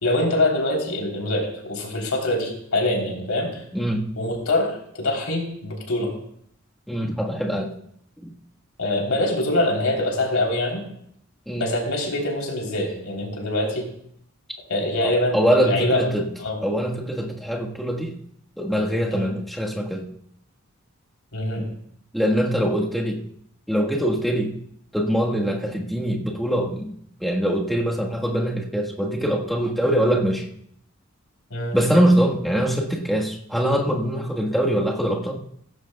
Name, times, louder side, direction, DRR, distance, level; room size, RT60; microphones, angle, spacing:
voice 1, 0.0-3.6 4.2-6.1 8.8-10.8 11.6-13.9 14.7-16.0 16.4-16.6 19.1-19.3 21.3-21.6 31.5-31.8, left 1 dB, 80° left, 0 dB, 3.5 m, -24 dB
voice 2, 3.7-4.1 6.9-7.7 11.5-11.7 15.0-16.3 16.6-18.1 18.6-20.1 22.1-23.2 23.7-24.5 24.9-26.9 27.2-30.4 31.7-35.4, equal, ahead, -2 dB, 1.4 m, -23 dB
16.5 x 14.5 x 2.3 m, 0.69 s
head